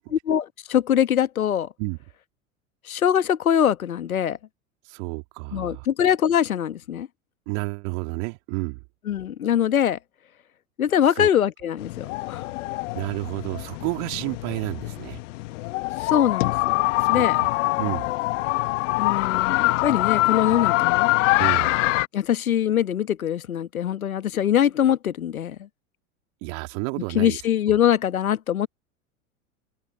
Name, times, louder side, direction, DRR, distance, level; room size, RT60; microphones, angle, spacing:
voice 1, 0.1-1.7 2.9-4.4 5.5-7.1 9.1-10.0 10.8-12.5 16.0-16.8 17.1-17.4 19.0-21.1 22.1-25.6 27.1-28.7, left 10 dB, 85° left, 1.3 m, -23 dB
voice 2, 4.8-5.9 7.5-8.8 11.2-11.3 12.9-15.2 17.0-18.1 21.4-21.7 26.4-27.4 27.7-27.8, right 33 dB, 55° right, 2.8 m, -31 dB
sound 1, 11.8-22.1, left 21 dB, 60° left, 1.3 m, -24 dB
hypercardioid pair, 85°, 41 cm